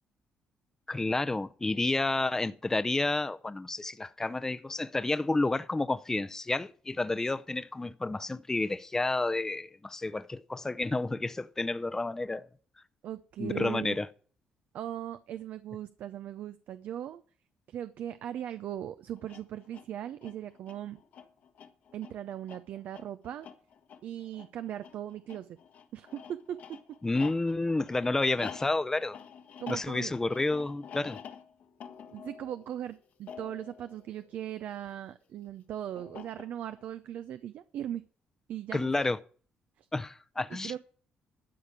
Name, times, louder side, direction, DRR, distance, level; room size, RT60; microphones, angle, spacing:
voice 1, 0.9-12.5 13.4-14.1 27.0-29.2 29.7-31.2 38.7-39.2 39.9-40.8, left 2 dB, 15° left, 0.6 m, -30 dB
voice 2, 13.0-14.0 14.7-17.2 17.7-21.0 21.9-23.5 24.0-25.6 25.9-26.8 29.6-30.1 32.1-38.0 38.5-38.9 39.8-39.9 40.5-40.8, right 11 dB, 70° right, 0.6 m, -39 dB
sound 1, 19.2-34.9 36.0-36.8, left 7 dB, 65° left, 1.4 m, -49 dB
12.5 x 5.1 x 8.9 m
cardioid pair, 85°, 3 cm